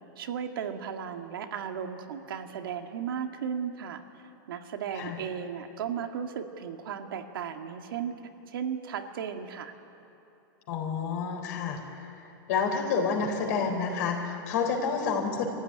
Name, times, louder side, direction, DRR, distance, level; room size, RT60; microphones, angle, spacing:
voice 1, 0.2-4.0 4.5-8.1 8.5-9.7, right 8 dB, 80° right, 5 dB, 2.0 m, -35 dB
voice 2, 10.7-11.8 12.5-15.5, left 5 dB, 50° left, 1 dB, 4.2 m, -29 dB
24.5 x 15.0 x 9.9 m, 2.9 s
supercardioid pair, 165°, 11 cm